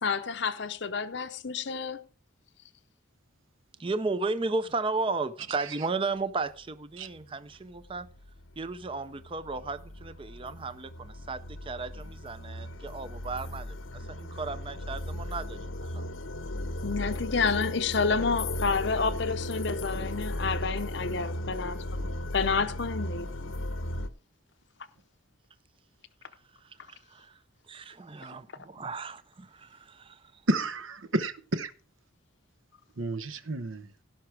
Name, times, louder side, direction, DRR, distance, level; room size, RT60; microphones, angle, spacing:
voice 1, 0.0-2.0 16.8-22.1 22.3-23.3, left 5 dB, 55° left, 0.7 m, -29 dB
voice 2, 3.8-8.1 8.6-16.0 26.6-27.4 27.7-30.4, right 3 dB, 25° right, 0.5 m, -35 dB
sound 1, 7.2-7.3 7.7-24.1, left 1 dB, 80° left, 0.9 m, -36 dB
voice 3, 30.5-31.7 33.0-33.8, right 2 dB, 75° right, 0.9 m, -30 dB
16.5 x 5.9 x 4.7 m
head